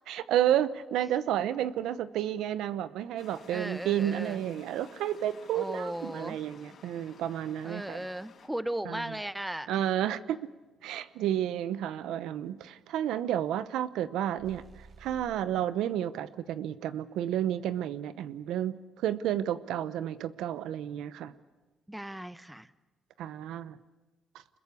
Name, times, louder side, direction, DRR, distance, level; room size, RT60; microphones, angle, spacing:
voice 1, 0.1-8.1 8.9-9.0 9.7-10.4 10.8-14.6 15.0-21.3 23.2-23.8, right 11 dB, 85° right, 14 dB, 0.8 m, -31 dB
sound 1, 3.2-8.5, left 5 dB, 55° left, 5.1 m, -55 dB
voice 2, 3.5-4.4 5.5-6.4 7.6-9.7 21.9-22.7, right 1 dB, 5° right, 14 dB, 0.9 m, -36 dB
sound 2, 14.4-15.6, right 4 dB, 40° right, 3.0 m, -53 dB
26.0 x 21.5 x 8.4 m, 1.1 s
cardioid pair, 90°, 0 cm